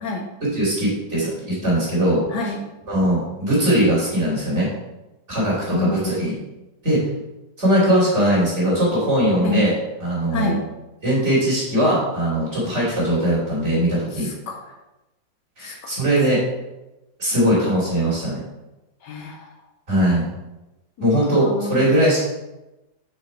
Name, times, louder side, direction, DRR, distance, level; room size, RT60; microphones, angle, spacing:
voice 1, 0.5-2.2 2.9-4.7 5.3-6.3 6.8-7.0 7.6-9.7 10.0-10.6 11.0-14.3 15.6-16.4 17.2-18.4 19.9-20.2 21.0-22.2, right 1 dB, 40° right, -7 dB, 3.1 m, -20 dB
voice 2, 2.3-2.6 5.7-6.4 7.9-8.0 9.4-9.7 10.3-10.6 14.1-14.7 15.6-16.0 19.0-19.5 21.0-21.9, left 3 dB, 75° left, 2 dB, 1.4 m, -28 dB
6.1 x 5.1 x 4.4 m, 0.98 s
omnidirectional pair, 1.9 m